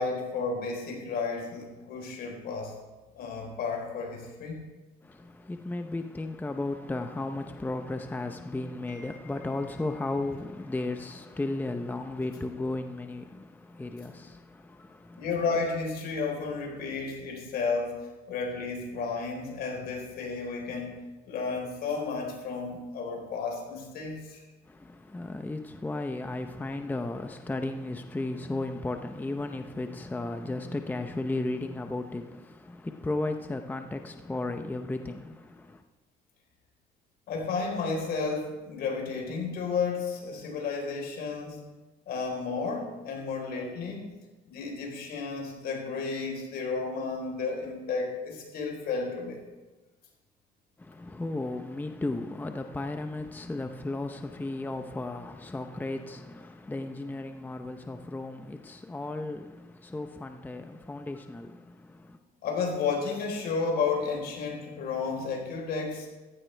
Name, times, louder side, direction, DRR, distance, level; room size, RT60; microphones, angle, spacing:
voice 1, 0.0-2.7 3.1-4.6 8.9-9.5 15.2-24.4 37.3-41.6 42.1-44.1 44.5-49.4 62.4-66.1, left 4 dB, 70° left, 4.2 m, -32 dB
voice 2, 5.0-15.3 24.7-35.8 50.8-62.2, left 2 dB, 10° left, 0.7 m, -35 dB
15.5 x 14.5 x 3.4 m
cardioid pair, 110°, 17 cm